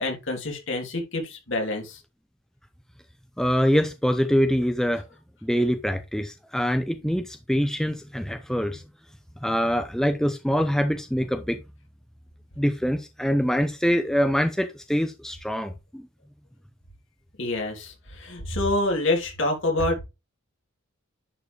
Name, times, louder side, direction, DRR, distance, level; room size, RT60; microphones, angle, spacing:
voice 1, 0.0-2.0 17.4-20.0, left 2 dB, 60° left, 3.2 m, -27 dB
voice 2, 3.4-5.0 5.4-8.8 9.4-11.6 12.6-16.0, equal, 5° left, 0.6 m, -24 dB
11.0 x 4.8 x 3.2 m
head